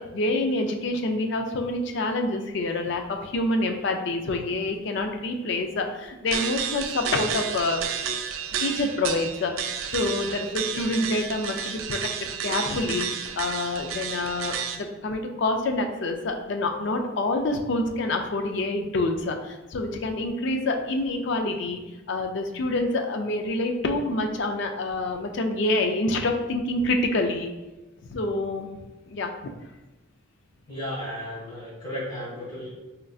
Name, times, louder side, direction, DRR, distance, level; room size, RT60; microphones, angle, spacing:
voice 1, 0.0-7.8 8.6-21.8 22.1-27.5 28.1-28.7 29.1-29.3, left 2 dB, 55° left, 4 dB, 0.4 m, -27 dB
sound 1, 6.3-14.8, right 8 dB, 75° right, 0.3 m, -31 dB
voice 2, 30.7-32.7, equal, 35° left, -10 dB, 1.4 m, -34 dB
4.3 x 2.5 x 2.3 m, 1.1 s
head